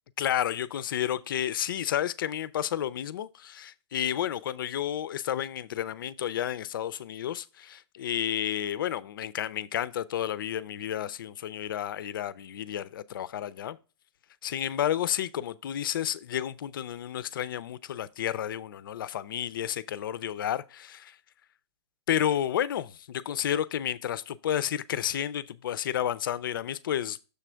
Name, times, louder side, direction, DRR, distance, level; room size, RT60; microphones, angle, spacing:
voice 1, 0.2-13.8 14.4-21.1 22.1-27.2, left 10 dB, 50° left, 0.4 m, -31 dB
6.8 x 3.3 x 6.1 m
hypercardioid pair, 170°, 14 cm